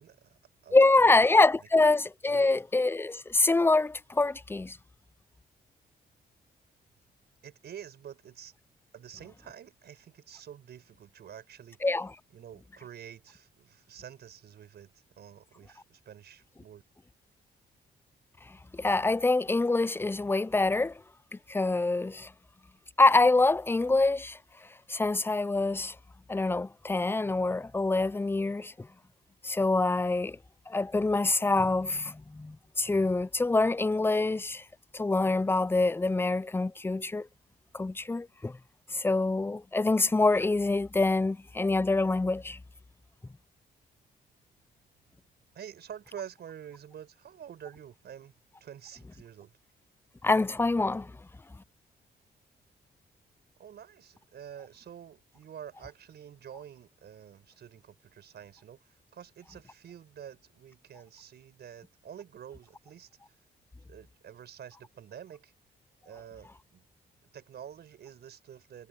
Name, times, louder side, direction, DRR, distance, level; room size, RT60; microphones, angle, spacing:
voice 1, 0.0-1.2 2.3-2.5 7.4-8.5 8.9-11.8 12.3-16.8 45.5-48.3 48.6-49.5 53.6-63.1 63.9-65.5 66.1-66.8 67.3-68.9, right 9 dB, 70° right, 5.4 m, -48 dB
voice 2, 0.7-4.8 11.8-12.1 18.7-20.9 21.3-22.3 23.0-24.4 24.9-25.9 26.3-28.9 29.4-30.4 30.7-34.6 34.9-37.3 37.7-38.6 38.9-42.6 50.2-51.1, left 2 dB, 15° left, 0.5 m, -25 dB
cardioid pair, 75°, 17 cm